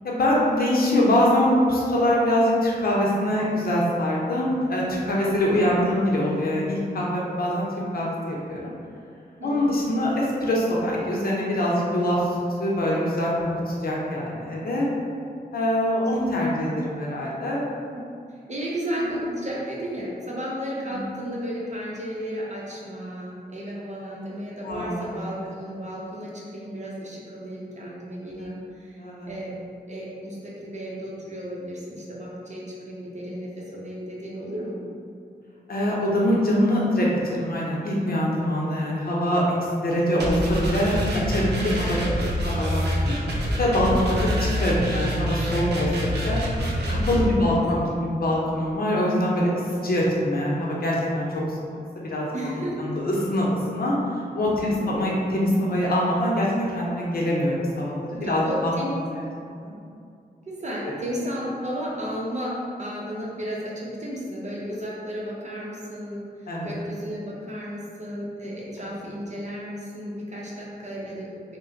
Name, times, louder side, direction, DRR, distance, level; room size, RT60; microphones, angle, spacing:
voice 1, 0.0-7.6 7.9-8.7 9.4-12.3 12.6-14.9 15.5-17.6 20.9-21.0 24.6-25.0 28.3-28.5 29.0-29.3 35.7-39.4 39.8-41.0 41.3-42.0 42.4-43.2 43.6-46.4 46.9-51.6 51.9-52.3 52.8-54.0 54.3-58.7 59.1-59.2 59.6-59.7 66.5-66.7, left 1 dB, 65° left, -4 dB, 0.7 m, -24 dB
voice 2, 9.4-9.7 17.9-18.0 18.5-29.5 29.9-34.8 41.7-42.3 43.9-44.2 47.2-47.6 52.3-53.0 54.6-54.9 58.1-59.0 60.5-71.6, equal, 45° right, -5 dB, 0.8 m, -34 dB
sound 1, 40.2-47.2, equal, 85° right, 0.6 m, -26 dB
3.2 x 2.2 x 3.8 m, 2.4 s
cardioid pair, 70°, 17 cm